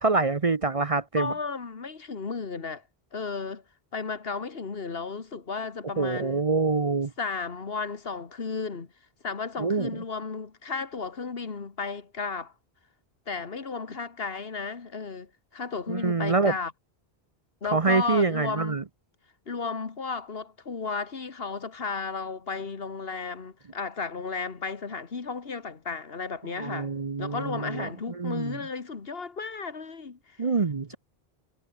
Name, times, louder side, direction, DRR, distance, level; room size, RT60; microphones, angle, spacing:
voice 1, 0.0-1.3 6.0-7.1 9.6-9.9 15.9-16.5 17.7-18.8 26.5-27.9 28.2-28.6 30.4-30.9, right 4 dB, 35° right, 0.8 m, -25 dB
voice 2, 1.2-2.8 3.1-3.6 3.9-6.4 7.2-8.9 9.2-12.5 13.3-16.7 17.6-18.8 19.5-26.9 27.2-30.4, left 4 dB, 65° left, 1.9 m, -34 dB
omnidirectional pair, 1.1 m